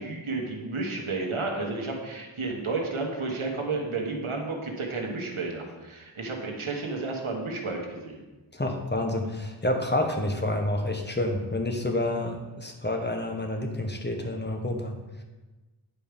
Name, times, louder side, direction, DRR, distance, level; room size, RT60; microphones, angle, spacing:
voice 1, 0.0-8.2, right 3 dB, 90° right, 1 dB, 1.5 m, -32 dB
voice 2, 8.5-14.9, left 1 dB, 20° left, 3 dB, 1.2 m, -29 dB
9.6 x 4.7 x 5.2 m, 1.2 s
wide cardioid pair, 50°, 48 cm